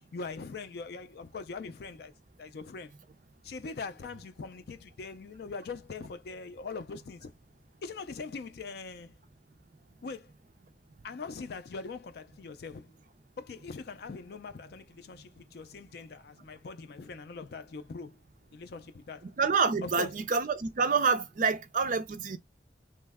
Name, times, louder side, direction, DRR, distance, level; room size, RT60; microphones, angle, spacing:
voice 1, 0.1-2.1 2.4-2.9 3.4-7.3 7.8-9.2 10.0-10.3 11.0-12.9 13.4-18.2 18.5-19.3 19.8-20.2, left 4 dB, 60° left, 0.4 m, -42 dB
voice 2, 19.4-22.4, right 5 dB, 45° right, 0.4 m, -27 dB
3.1 x 2.0 x 3.5 m
head